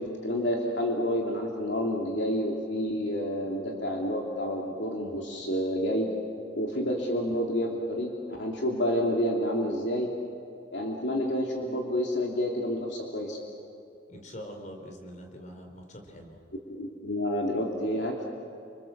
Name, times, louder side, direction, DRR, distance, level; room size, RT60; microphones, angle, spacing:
voice 1, 0.0-6.1 6.5-10.1 10.7-13.4 16.7-18.3, equal, 65° left, 0 dB, 2.8 m, -29 dB
voice 2, 14.1-16.4, equal, 40° left, 3 dB, 4.2 m, -44 dB
30.0 x 26.5 x 7.3 m, 2.6 s
head